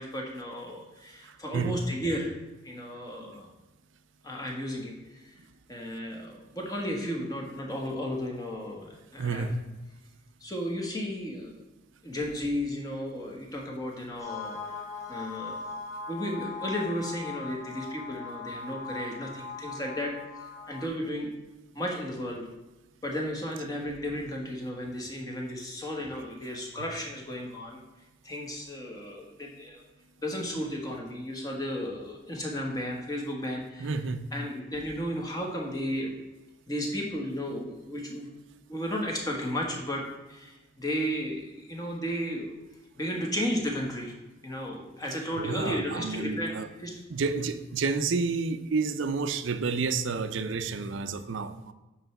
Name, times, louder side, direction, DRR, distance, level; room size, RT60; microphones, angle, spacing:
voice 1, 0.0-2.3 2.6-3.5 4.2-5.3 5.7-9.4 10.4-11.6 12.0-14.7 15.1-15.6 16.1-20.1 20.7-21.3 21.7-22.5 23.0-27.8 28.2-29.8 30.2-33.9 34.3-36.1 36.7-38.3 38.7-42.5 43.0-44.2 44.4-46.5 46.8-47.3, equal, 20° left, 0 dB, 1.3 m, -34 dB
voice 2, 1.2-1.8 9.2-9.6 33.8-34.3 45.4-46.7 47.1-51.7, right 4 dB, 70° right, 11 dB, 0.5 m, -30 dB
sound 1, 14.2-20.9, left 3 dB, ahead, 2.5 m, -40 dB
8.9 x 3.3 x 5.9 m, 1.1 s
head